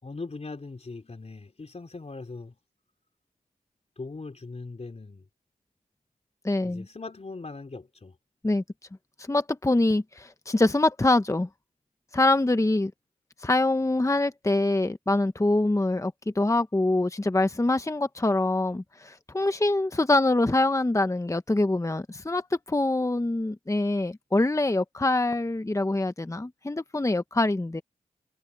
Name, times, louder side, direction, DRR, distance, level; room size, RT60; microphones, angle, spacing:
voice 1, 0.0-2.6 4.0-5.2 6.6-8.2, left 3 dB, 45° left, 3.6 m, -40 dB
voice 2, 6.4-6.9 8.4-8.6 9.3-11.5 12.1-12.9 13.4-27.8, left 2 dB, 20° left, 1.1 m, -24 dB
cardioid pair, 45°, 15 cm